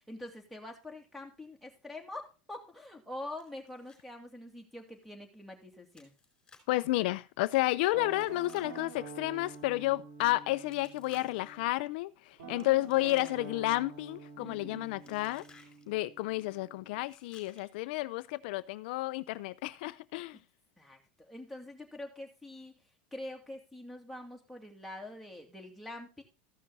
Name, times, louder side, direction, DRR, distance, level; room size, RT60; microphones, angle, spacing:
voice 1, 0.0-6.1 12.4-12.6 14.4-15.3 20.8-22.8 23.1-26.2, left 1 dB, ahead, 2.6 m, -45 dB
Chewing mastication, 3.4-4.0 4.3-4.4 4.9-5.1 5.9-6.8 8.1-9.6 10.7-11.6 12.5-13.7 13.9-14.3 15.0-15.8 17.0-17.8, left 4 dB, 15° left, 4.4 m, -60 dB
voice 2, 6.7-15.4 15.9-20.4, left 19 dB, 70° left, 0.5 m, -31 dB
Guitar, 7.9-11.7 12.4-17.1, right 5 dB, 85° right, 3.3 m, -48 dB
14.5 x 6.1 x 4.1 m
supercardioid pair, 135°, 5 cm